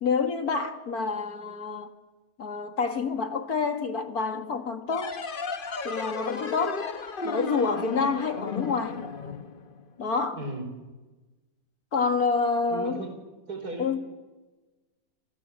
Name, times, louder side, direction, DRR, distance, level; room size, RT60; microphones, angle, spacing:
voice 1, 0.0-1.9 2.4-5.2 5.8-6.9 7.2-9.0 10.0-10.4 11.9-13.0 13.8-14.0, left 4 dB, 70° left, 2.5 m, -28 dB
sound 1, 4.9-10.1, left 5 dB, 40° left, 1.1 m, -34 dB
voice 2, 10.3-10.7 12.7-13.2 13.5-14.0, right 2 dB, 75° right, 5.3 m, -35 dB
29.5 x 27.0 x 7.5 m
omnidirectional pair, 1.6 m